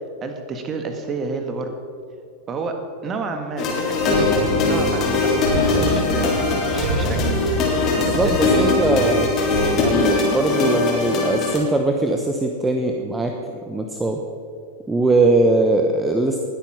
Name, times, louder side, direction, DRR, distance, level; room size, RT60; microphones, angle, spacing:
voice 1, 0.2-1.7 2.5-2.8 3.0-4.1 4.5-5.5 5.7-7.2 7.6-8.5, right 4 dB, 25° right, 6 dB, 1.7 m, -30 dB
sound 1, 3.6-11.6, left 3 dB, 35° left, 3.6 m, -21 dB
sound 2, 3.9-9.9, right 3 dB, 55° right, 1.6 m, -28 dB
voice 2, 8.0-9.3 9.8-13.4 13.7-14.2 14.9-16.4, right 2 dB, 10° right, 4 dB, 0.9 m, -21 dB
19.5 x 8.8 x 5.7 m, 2.5 s
figure-of-eight pair, 90°, 0 cm